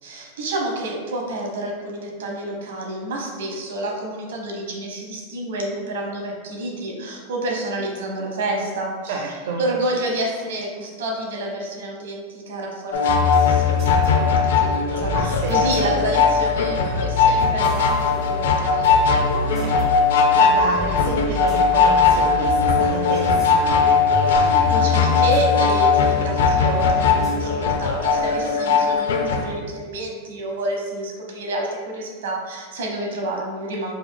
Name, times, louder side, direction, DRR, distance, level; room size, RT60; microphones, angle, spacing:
voice 1, 0.0-9.2 9.6-18.9 24.3-34.0, right 2 dB, 90° right, -1 dB, 1.0 m, -29 dB
voice 2, 9.0-9.6 15.1-15.9 19.3-23.7, right 3 dB, 70° right, -1 dB, 0.5 m, -30 dB
sound 1, 12.9-29.5, left 5 dB, 85° left, 0.5 m, -19 dB
sound 2, 13.1-28.3, left 5 dB, 10° right, 0.8 m, -28 dB
5.0 x 3.1 x 2.2 m, 1.5 s
supercardioid pair, 150°, 0 cm